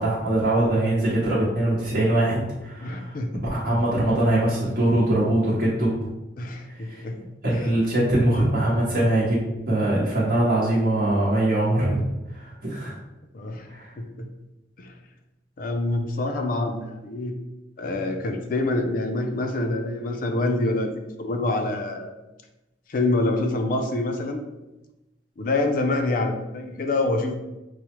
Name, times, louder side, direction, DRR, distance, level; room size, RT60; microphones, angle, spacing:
voice 1, 0.0-3.2 3.5-5.9 6.7-7.0 7.4-9.4 9.7-12.9 13.7-13.9, right 1 dB, 55° right, -7 dB, 0.8 m, -22 dB
voice 2, 2.8-3.4 6.4-7.2 7.5-7.7 13.3-13.7 14.0-14.3 14.8-14.9 15.6-17.3 17.8-22.1 22.9-24.4 25.4-27.3, left 2 dB, 50° left, 5 dB, 0.4 m, -26 dB
4.6 x 2.1 x 2.9 m, 0.99 s
head